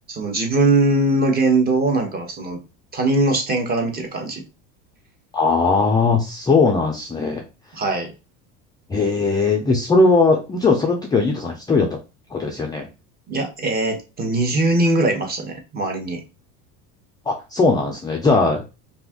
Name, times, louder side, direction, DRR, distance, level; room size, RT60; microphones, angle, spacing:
voice 1, 0.1-2.6 2.9-4.4 7.7-8.1 13.3-16.2, right 2 dB, 25° right, 3 dB, 0.9 m, -21 dB
voice 2, 5.3-7.4 8.9-11.9 12.3-12.9 17.3-18.6, left 3 dB, 10° left, 0 dB, 0.4 m, -19 dB
2.7 x 2.4 x 3.4 m, 0.29 s
supercardioid pair, 125°, 35 cm